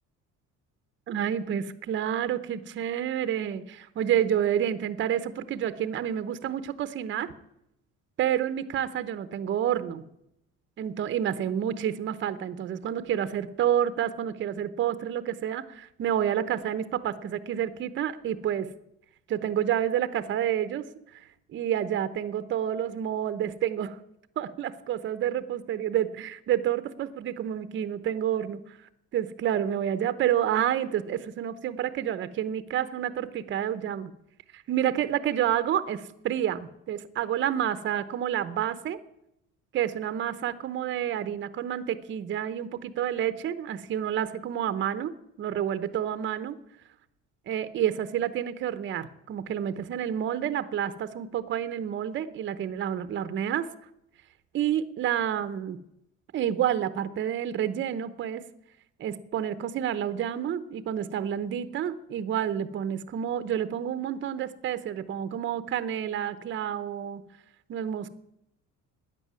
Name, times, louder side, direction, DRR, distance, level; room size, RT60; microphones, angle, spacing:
voice 1, 1.1-7.3 8.2-10.0 10.8-18.7 19.3-20.9 21.1-24.0 24.4-28.8 29.1-34.1 34.5-39.0 39.7-45.1 45.4-46.6 47.5-53.7 54.5-55.8 56.3-58.4 59.0-67.2 67.7-68.1, right 10 dB, 40° right, 13 dB, 0.9 m, -29 dB
13.0 x 9.9 x 9.6 m, 0.79 s
cardioid pair, 170°, 30 cm